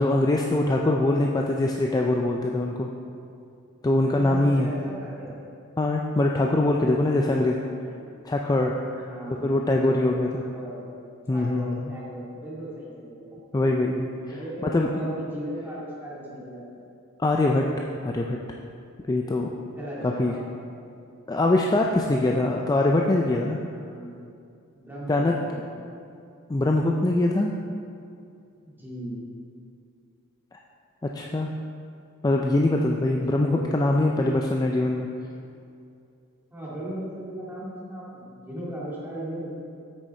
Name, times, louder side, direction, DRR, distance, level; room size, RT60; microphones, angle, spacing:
voice 1, 0.0-2.9 3.8-4.7 5.8-7.6 8.2-9.1 9.4-10.4 11.3-11.8 13.5-14.4 14.7-14.9 17.2-17.7 18.0-18.4 19.1-19.5 20.0-20.3 21.3-23.6 25.1-25.4 26.5-27.5 31.0-31.5 32.2-35.1, left 2 dB, 15° left, 1 dB, 0.3 m, -23 dB
voice 2, 4.1-5.3 6.8-8.0 9.0-10.9 11.3-13.4 14.3-16.8 19.7-20.4 23.7-24.3 24.8-25.8 28.6-29.3 33.2-33.8 36.5-39.5, equal, 10° right, -7 dB, 2.1 m, -37 dB
8.2 x 6.3 x 4.3 m, 2.5 s
head